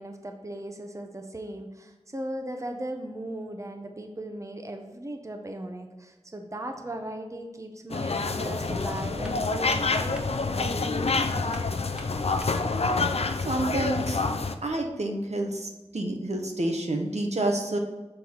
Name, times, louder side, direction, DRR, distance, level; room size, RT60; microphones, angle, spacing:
voice 1, 0.0-11.3, right 1 dB, 25° right, 4 dB, 0.7 m, -37 dB
sound 1, 7.9-14.5, left 3 dB, 60° left, 0.4 m, -27 dB
sound 2, 8.6-12.7, equal, 5° right, 1.2 m, -44 dB
voice 2, 13.4-14.2 14.6-17.8, right 2 dB, 70° right, 2 dB, 0.9 m, -29 dB
6.6 x 4.0 x 4.3 m, 1.2 s
wide cardioid pair, 40°, 12 cm